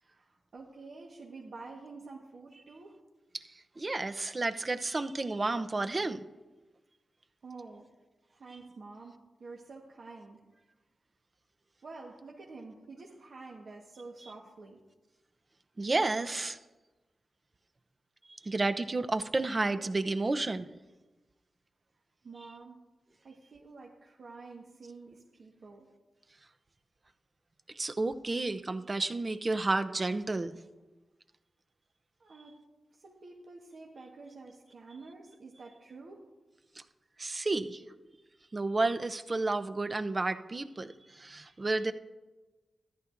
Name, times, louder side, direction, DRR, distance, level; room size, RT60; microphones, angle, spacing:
voice 1, 0.0-3.0 7.4-7.9 8.3-10.4 11.8-14.8 22.2-22.8 23.2-25.9 32.2-32.6 32.9-36.2, right 3 dB, 70° right, 1.3 m, -49 dB
voice 2, 3.8-6.2 15.8-16.6 18.3-20.7 27.7-30.5 37.2-37.8 38.5-41.9, right 2 dB, 40° right, 0.7 m, -31 dB
14.0 x 11.0 x 2.6 m
cardioid pair, 50°, 0 cm